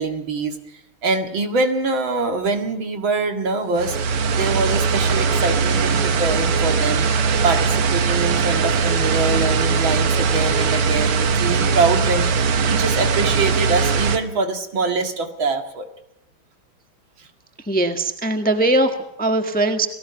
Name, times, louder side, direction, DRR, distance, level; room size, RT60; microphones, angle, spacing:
voice 1, 0.0-4.0 4.3-7.1 7.4-15.9 17.2-17.3, right 3 dB, 65° right, 5 dB, 2.7 m, -24 dB
sound 1, 3.7-14.2, right 5 dB, 80° right, 2.3 m, -20 dB
voice 2, 17.6-19.9, right 1 dB, 5° left, 5 dB, 1.3 m, -20 dB
30.0 x 18.5 x 5.8 m, 0.78 s
omnidirectional pair, 2.4 m